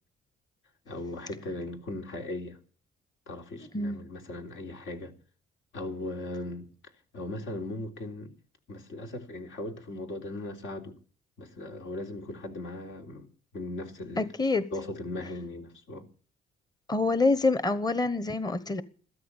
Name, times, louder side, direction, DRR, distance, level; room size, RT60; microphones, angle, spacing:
voice 1, 0.9-2.6 3.3-5.1 5.7-6.7 7.1-8.3 8.7-11.0 11.4-13.3 13.5-14.3 14.7-16.1, left 2 dB, 75° left, 3.5 m, -38 dB
voice 2, 14.2-14.6 16.9-18.8, left 3 dB, 20° left, 1.1 m, -26 dB
14.0 x 13.0 x 7.2 m
cardioid pair, 90°, 20 cm